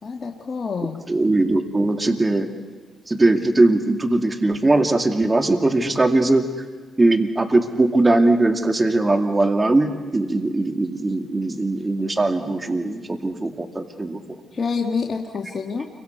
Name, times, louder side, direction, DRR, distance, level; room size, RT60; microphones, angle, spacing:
voice 1, 0.0-1.0 14.5-15.9, left 5 dB, 45° left, 1 dB, 1.7 m, -27 dB
voice 2, 1.1-2.5 3.1-6.5 7.0-14.2, right 2 dB, 25° right, 5 dB, 2.3 m, -20 dB
29.0 x 24.0 x 4.6 m, 1.4 s
cardioid pair, 60°, 0 cm